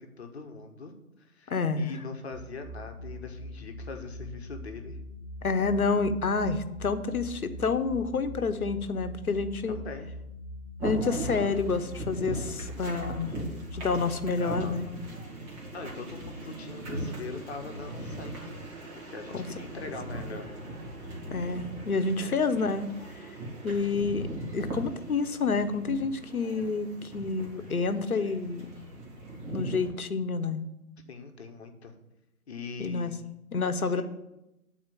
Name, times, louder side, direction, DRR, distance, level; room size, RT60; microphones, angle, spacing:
voice 1, 0.2-0.9 1.2-5.0 9.7-10.1 14.4-14.8 15.7-18.6 18.9-20.5 22.1-22.4 31.1-31.9 32.5-33.3 33.8-34.0, left 4 dB, 45° left, 5 dB, 1.2 m, -42 dB
voice 2, 1.5-1.9 5.4-9.8 10.8-13.3 13.7-14.9 19.3-19.5 21.3-22.9 23.6-28.7 29.5-30.7 32.8-33.1 33.5-34.0, left 4 dB, 70° left, 11 dB, 1.0 m, -28 dB
sound 1, 2.3-14.1, left 1 dB, 60° right, 1.8 m, -42 dB
sound 2, 10.8-29.9, right 1 dB, 25° right, 2.2 m, -39 dB
9.5 x 4.4 x 7.6 m, 0.91 s
figure-of-eight pair, 135°, 44 cm